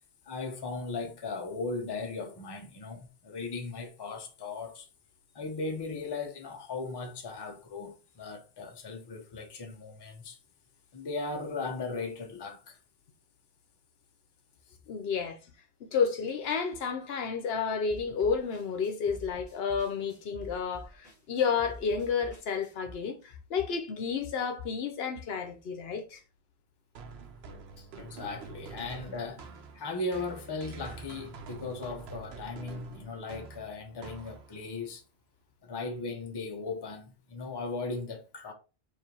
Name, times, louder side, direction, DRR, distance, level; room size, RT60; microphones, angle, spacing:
voice 1, 0.3-4.9 5.3-10.4 10.9-12.8 27.8-29.5 29.7-35.0 35.6-38.5, left 3 dB, 30° left, 0.6 m, -37 dB
voice 2, 14.9-15.4 15.8-26.2, left 6 dB, 75° left, 0.9 m, -31 dB
sound 1, 17.9-22.9, left 1 dB, 5° left, 1.9 m, -49 dB
sound 2, 27.0-34.8, right 4 dB, 75° right, 0.9 m, -46 dB
4.7 x 2.6 x 2.8 m
omnidirectional pair, 1.1 m